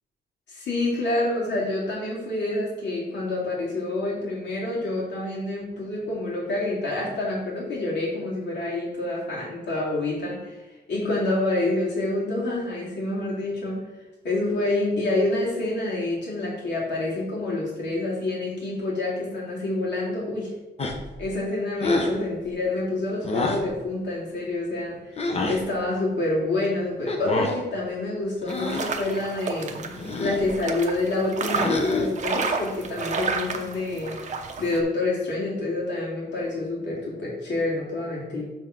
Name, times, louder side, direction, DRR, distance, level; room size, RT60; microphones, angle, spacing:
voice 1, 0.5-13.9 14.2-20.5 21.2-29.9 30.2-38.4, left 2 dB, 75° left, -5 dB, 2.7 m, -27 dB
sound 1, 20.8-21.2 21.8-22.2 23.2-23.7 25.2-25.6 27.1-27.6 28.4-29.0 30.0-30.5 31.5-32.2, left 2 dB, 35° left, 0.8 m, -27 dB
sound 2, 28.5-34.8, right 4 dB, 40° right, 0.7 m, -31 dB
7.3 x 3.6 x 5.8 m, 1.1 s
wide cardioid pair, 170°, 18 cm